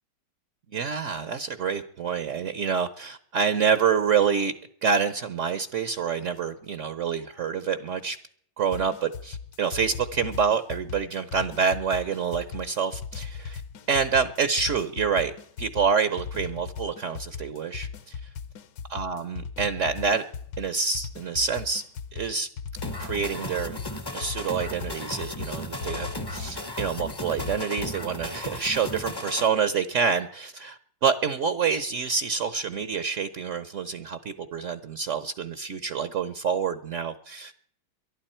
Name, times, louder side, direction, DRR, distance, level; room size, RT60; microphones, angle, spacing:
voice 1, 0.7-4.5 4.8-8.2 8.6-13.6 13.9-15.3 15.6-17.9 18.2-18.3 18.9-20.2 20.6-21.8 22.1-22.5 23.0-23.8 24.1-37.5, right 6 dB, 75° right, 12 dB, 0.6 m, -27 dB
sound 1, 8.7-28.0, left 6 dB, 65° left, 1.3 m, -38 dB
sound 2, 22.8-29.5, left 1 dB, 35° left, 0.3 m, -36 dB
23.0 x 12.0 x 4.4 m, 0.63 s
omnidirectional pair, 2.3 m